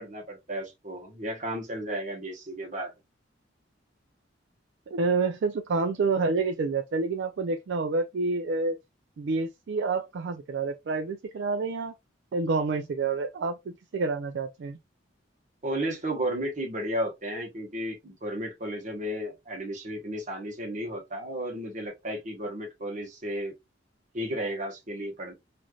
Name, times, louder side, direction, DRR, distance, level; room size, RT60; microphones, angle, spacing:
voice 1, 0.0-2.9 15.6-23.5 24.1-25.3, right 1 dB, 40° right, 1.0 m, -33 dB
voice 2, 4.9-8.8 9.2-11.9 12.3-14.8, right 4 dB, 65° right, 0.4 m, -28 dB
3.1 x 2.5 x 2.3 m
head